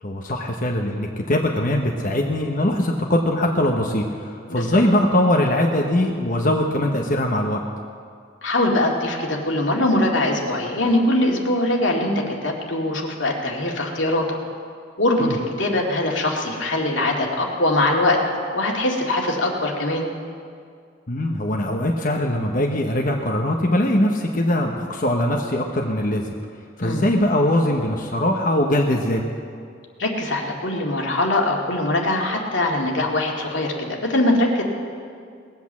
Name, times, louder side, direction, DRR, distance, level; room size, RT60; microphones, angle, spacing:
voice 1, 0.0-7.6 15.2-15.4 21.1-26.2 26.8-29.2, left 1 dB, 45° left, 1 dB, 1.0 m, -21 dB
voice 2, 8.4-12.1 12.4-14.3 15.0-18.2 18.5-20.1 26.8-27.0 30.0-34.6, left 1 dB, 85° left, 0 dB, 2.2 m, -22 dB
20.0 x 8.3 x 7.4 m, 2.2 s
head